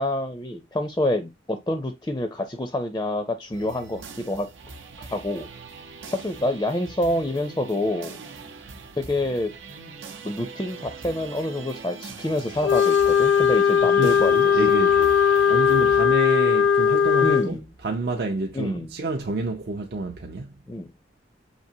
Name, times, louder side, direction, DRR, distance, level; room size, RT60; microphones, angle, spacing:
voice 1, 0.0-4.0 4.3-4.5 5.0-5.5 6.1-8.2 9.0-9.5 10.2-14.4 17.2-17.7 18.5-18.9 20.7-20.9, left 1 dB, 15° left, 0.4 m, -27 dB
sound 1, 3.5-16.0, right 4 dB, 90° right, 0.8 m, -41 dB
Wind instrument woodwind instrument, 12.6-17.5, left 7 dB, 90° left, 0.4 m, -19 dB
voice 2, 14.0-15.1 15.5-17.6 17.8-20.5, right 2 dB, 55° right, 0.5 m, -28 dB
5.9 x 2.8 x 2.7 m
head